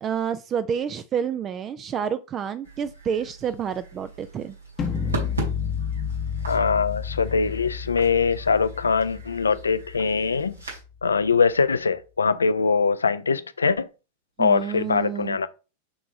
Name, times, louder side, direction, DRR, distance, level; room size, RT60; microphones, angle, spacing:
voice 1, 0.0-4.6 14.4-15.4, right 8 dB, 30° right, 0.3 m, -29 dB
sound 1, 2.6-10.8, right 3 dB, 80° right, 2.6 m, -39 dB
sound 2, 4.8-10.8, left 7 dB, 25° left, 0.7 m, -31 dB
voice 2, 6.5-10.5 11.0-13.9 14.4-15.5, left 5 dB, 75° left, 0.4 m, -22 dB
6.0 x 3.5 x 5.0 m
figure-of-eight pair, 90°, 0 cm